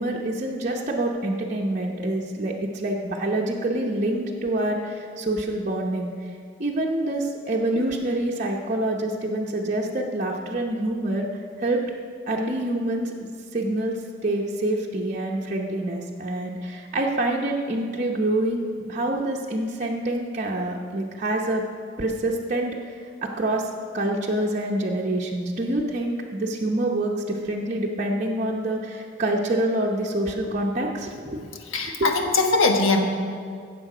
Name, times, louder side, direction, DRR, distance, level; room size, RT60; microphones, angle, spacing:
voice 1, 0.0-6.1 6.6-11.3 11.6-11.8 12.3-13.1 13.5-21.6 22.0-23.7 23.9-31.4 32.0-32.1, right 1 dB, 35° right, -3 dB, 0.8 m, -26 dB
voice 2, 31.7-33.0, left 3 dB, 75° left, 3 dB, 1.2 m, -21 dB
15.5 x 7.0 x 4.9 m, 2.2 s
head